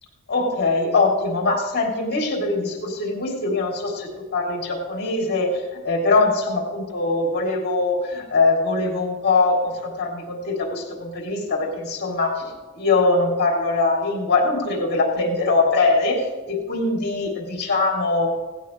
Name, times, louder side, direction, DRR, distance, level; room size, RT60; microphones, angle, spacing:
voice 1, 0.3-18.3, left 3 dB, 50° left, 0 dB, 2.8 m, -22 dB
17.0 x 15.0 x 3.1 m, 1.4 s
head